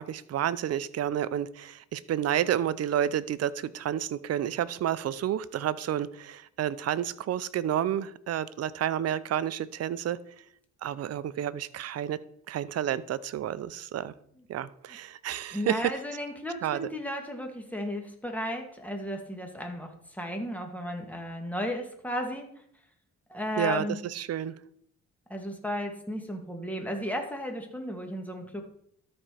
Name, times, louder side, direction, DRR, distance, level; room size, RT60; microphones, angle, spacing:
voice 1, 0.0-10.2 10.8-12.2 12.5-14.1 14.5-15.9 16.6-16.8 23.6-24.5, right 10 dB, 55° right, 16 dB, 0.6 m, -30 dB
voice 2, 15.5-22.5 23.3-24.0 25.3-28.6, left 1 dB, 5° left, 3 dB, 1.9 m, -34 dB
12.5 x 4.3 x 5.0 m, 0.68 s
cardioid pair, 90°, 30 cm